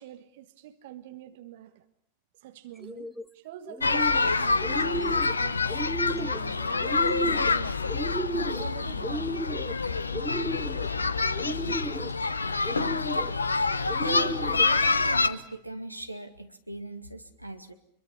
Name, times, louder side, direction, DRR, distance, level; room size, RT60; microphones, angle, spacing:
voice 1, 0.0-1.8 2.3-5.7 6.1-8.1 8.6-9.3 11.4-12.2, right 13 dB, 55° right, 1.5 m, -46 dB
sound 1, 2.8-3.3 3.7-4.3 4.6-5.3 5.7-6.4 6.8-7.5 7.9-8.7 9.0-9.7 10.1-10.9 11.4-12.1 12.6-13.3 13.9-14.7, right 1 dB, 5° right, 1.0 m, -34 dB
sound 2, 3.8-15.3, left 4 dB, 75° left, 1.1 m, -27 dB
voice 2, 14.0-17.7, right 2 dB, 85° right, 2.2 m, -38 dB
26.0 x 22.5 x 8.5 m
figure-of-eight pair, 90°, 0 cm